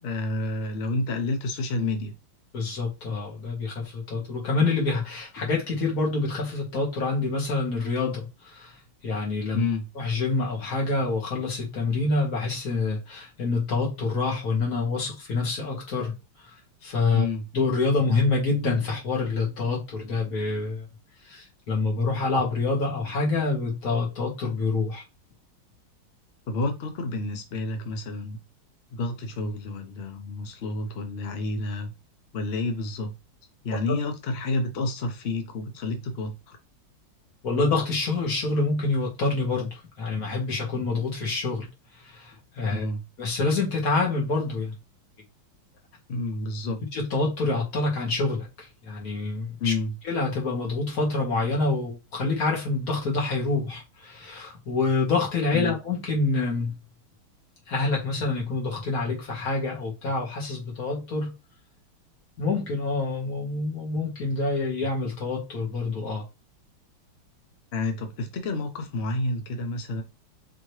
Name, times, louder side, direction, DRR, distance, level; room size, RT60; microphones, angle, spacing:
voice 1, 0.0-2.1 9.5-9.9 17.1-17.5 26.5-28.4 28.9-31.9 32.3-33.1 33.6-36.6 42.7-43.0 46.1-46.8 49.6-49.9 55.5-55.8 67.7-70.0, left 2 dB, 85° left, 0.5 m, -29 dB
voice 2, 2.5-8.8 9.0-9.7 10.0-16.1 16.4-16.6 16.8-17.3 17.5-20.9 21.2-25.0 33.9-34.0 37.4-41.7 42.0-42.9 43.2-44.7 46.9-49.7 50.0-56.8 57.7-61.3 62.4-66.2, left 3 dB, 45° left, 1.9 m, -27 dB
4.7 x 2.9 x 3.1 m
omnidirectional pair, 2.3 m